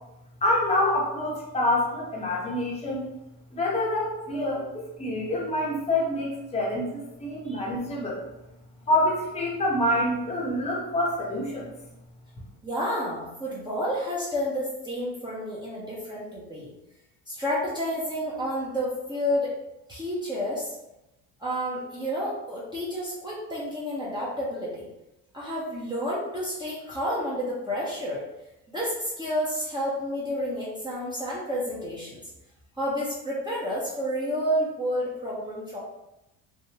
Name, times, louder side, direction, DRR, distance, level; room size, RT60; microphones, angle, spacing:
voice 1, 0.4-3.0 3.5-8.2 8.9-11.7, left 1 dB, 15° left, -3 dB, 0.9 m, -26 dB
voice 2, 12.6-16.7 17.3-19.5 19.9-20.7 21.4-24.9 25.3-28.2 28.7-32.2 32.8-35.8, equal, 10° right, -8 dB, 0.8 m, -30 dB
3.5 x 2.1 x 2.8 m, 0.93 s
supercardioid pair, 85°, 41 cm